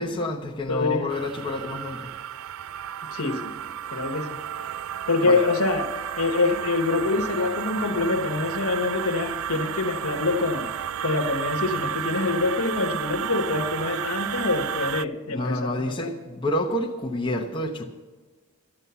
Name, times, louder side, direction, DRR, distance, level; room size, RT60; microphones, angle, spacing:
voice 1, 0.0-2.1 5.2-5.5 15.3-17.8, left 1 dB, 20° left, 0.9 m, -28 dB
voice 2, 0.7-1.1 3.1-3.5 3.9-4.4 5.1-10.7 11.0-16.1, left 3 dB, 75° left, 1.2 m, -25 dB
sound 1, 1.1-15.1, right 9 dB, 65° right, 0.3 m, -32 dB
12.5 x 9.9 x 6.9 m
head